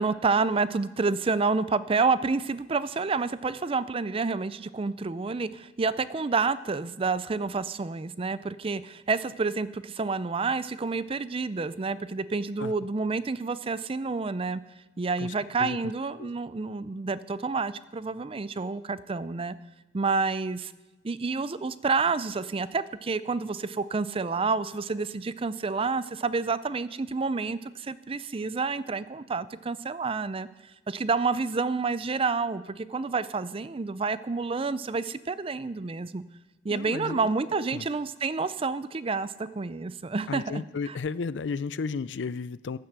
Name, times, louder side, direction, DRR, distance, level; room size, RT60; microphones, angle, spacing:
voice 1, 0.0-14.6 15.0-19.6 19.9-20.7 21.0-30.5 30.9-36.2 36.6-40.9, right 4 dB, 30° right, 16 dB, 0.5 m, -29 dB
voice 2, 15.2-15.8 16.2-16.4 36.7-37.9 40.3-42.8, left 5 dB, 80° left, 17 dB, 0.5 m, -34 dB
14.5 x 9.5 x 6.1 m, 1.1 s
head